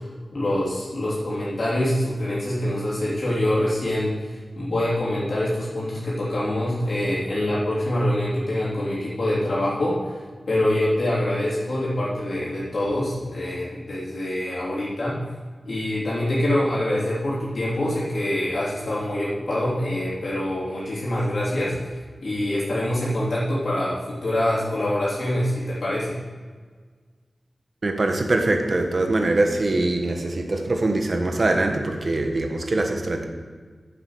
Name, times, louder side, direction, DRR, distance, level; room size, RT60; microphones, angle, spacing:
voice 1, 0.3-10.0 10.5-15.2 15.6-22.0 22.2-26.2, left 1 dB, 60° left, -9 dB, 3.4 m, -25 dB
voice 2, 27.8-33.3, right 2 dB, 50° right, 4 dB, 1.4 m, -23 dB
9.8 x 7.5 x 6.5 m, 1.5 s
wide cardioid pair, 100°, 0 cm